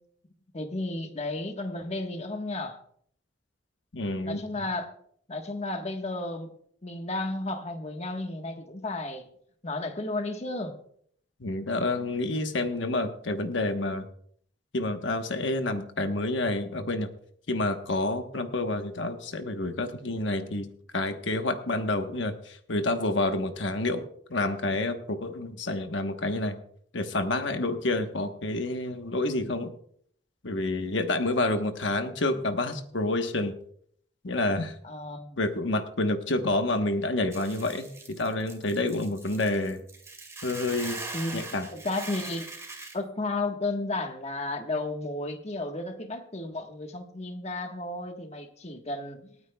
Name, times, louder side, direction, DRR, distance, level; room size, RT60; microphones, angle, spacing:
voice 1, 0.5-2.8 4.2-4.9 5.3-6.5 6.8-9.2 9.6-10.7 34.8-35.4 41.1-42.5 42.9-49.4, left 2 dB, 35° left, 4 dB, 1.3 m, -33 dB
voice 2, 3.9-4.4 11.4-14.1 14.7-17.1 17.5-24.0 24.3-26.6 26.9-29.7 30.4-33.5 34.2-34.7 35.4-39.8 40.4-41.0 41.3-41.7, left 2 dB, 85° left, 6 dB, 1.1 m, -28 dB
Hiss / Boiling, 37.3-42.9, right 3 dB, 15° right, 2.1 m, -41 dB
27.5 x 9.4 x 2.3 m, 0.63 s
head